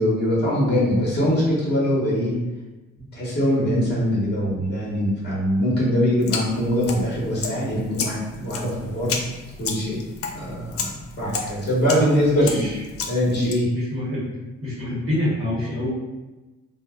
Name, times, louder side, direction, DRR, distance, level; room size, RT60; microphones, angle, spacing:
voice 1, 0.0-2.3 3.1-9.2 9.6-10.0 10.3-12.6 13.1-13.7, equal, 35° left, -6 dB, 1.1 m, -22 dB
sound 1, 6.2-13.5, left 5 dB, 50° left, 0.4 m, -33 dB
voice 2, 12.3-12.8 13.7-14.3 14.6-15.9, left 1 dB, 45° right, -7 dB, 0.9 m, -26 dB
2.3 x 2.1 x 3.5 m, 1.1 s
cardioid pair, 90°, 30 cm